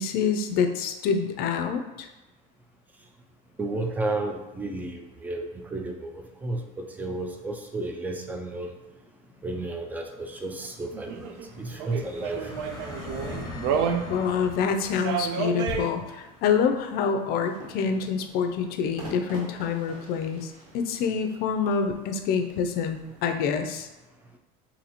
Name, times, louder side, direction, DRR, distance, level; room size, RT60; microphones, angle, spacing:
voice 1, 0.0-2.1 14.1-23.9, left 6 dB, 50° left, 7 dB, 0.5 m, -26 dB
voice 2, 3.6-8.7 9.4-11.3 11.6-12.5, right 2 dB, 10° right, 3 dB, 0.3 m, -32 dB
sound 1, 8.5-19.6, left 2 dB, 20° left, 0.8 m, -44 dB
sound 2, 10.9-14.4 14.8-15.9 19.5-19.6, right 7 dB, 75° right, 0.5 m, -30 dB
sound 3, 17.4-23.1, right 1 dB, 45° right, 1.4 m, -46 dB
2.8 x 2.7 x 4.1 m, 1.1 s
cardioid pair, 145°, 20 cm